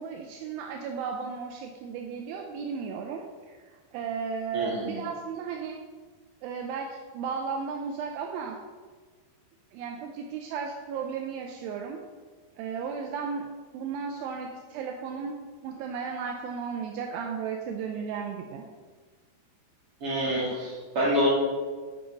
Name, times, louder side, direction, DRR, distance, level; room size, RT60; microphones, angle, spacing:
voice 1, 0.0-5.8 6.4-8.6 9.7-12.0 12.6-13.5 13.7-18.6, right 6 dB, 80° right, 2 dB, 2.2 m, -35 dB
voice 2, 4.5-5.0 20.0-21.3, equal, 35° right, -7 dB, 4.1 m, -27 dB
14.0 x 5.8 x 3.9 m, 1.5 s
omnidirectional pair, 4.8 m